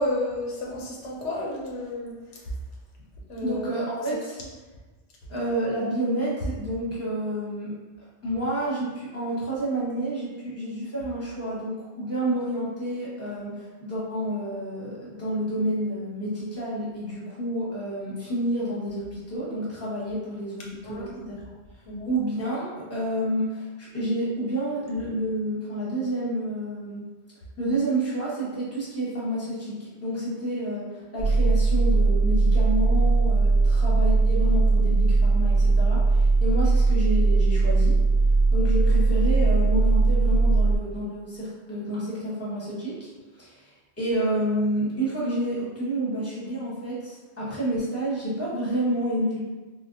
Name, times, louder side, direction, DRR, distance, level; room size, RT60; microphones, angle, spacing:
voice 1, 0.0-2.2 3.3-3.7 20.8-21.3 21.9-22.1, left 1 dB, 85° left, -3 dB, 1.0 m, -31 dB
voice 2, 3.4-4.4 5.3-7.7 8.2-21.4 22.1-27.0 27.6-38.0 38.5-43.1 43.4-43.6 44.0-49.4, right 1 dB, 15° left, -7 dB, 0.8 m, -29 dB
sound 1, 31.2-40.8, right 3 dB, 80° right, 1.0 m, -20 dB
3.6 x 2.1 x 2.5 m, 1.2 s
omnidirectional pair, 1.2 m